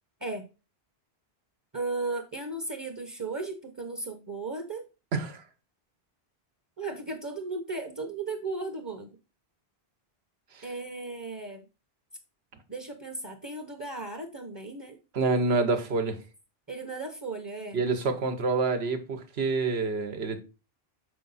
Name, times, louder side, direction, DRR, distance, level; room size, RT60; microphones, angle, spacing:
voice 1, 1.7-4.8 6.8-9.2 10.6-11.6 12.7-15.0 16.7-17.8, right 3 dB, 20° right, 0.8 m, -35 dB
voice 2, 5.1-5.4 10.5-10.7 15.1-16.2 17.7-20.4, right 3 dB, 80° right, 1.2 m, -27 dB
6.8 x 4.6 x 4.0 m
omnidirectional pair, 1.0 m